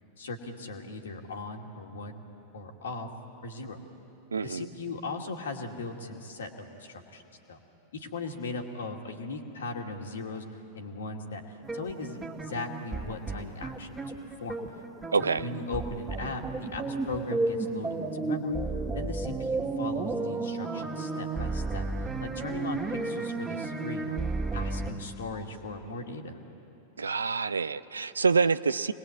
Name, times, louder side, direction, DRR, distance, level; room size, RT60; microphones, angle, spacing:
voice 1, 0.2-2.3 2.5-3.1 3.4-3.8 4.4-7.2 7.5-7.6 7.9-10.4 10.7-14.0 14.4-14.6 15.4-18.6 18.9-21.9 22.2-24.2 24.5-26.4, left 2 dB, 65° left, 3 dB, 2.2 m, -38 dB
voice 2, 4.3-4.7 15.1-15.5 27.0-28.9, right 5 dB, 75° right, 15 dB, 0.5 m, -26 dB
sound 1, 11.6-24.9, right 3 dB, 10° right, 2.3 m, -33 dB
26.5 x 20.5 x 8.4 m, 2.9 s
figure-of-eight pair, 90°, 0 cm